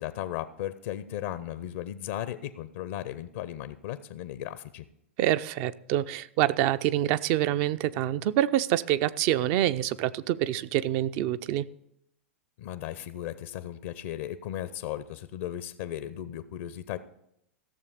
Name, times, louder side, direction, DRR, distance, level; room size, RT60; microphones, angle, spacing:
voice 1, 0.0-4.8 12.6-17.0, left 12 dB, 60° left, 14 dB, 0.6 m, -36 dB
voice 2, 5.2-11.7, right 13 dB, 45° right, 14 dB, 0.5 m, -26 dB
15.5 x 6.9 x 5.1 m, 0.77 s
hypercardioid pair, 100°, 7 cm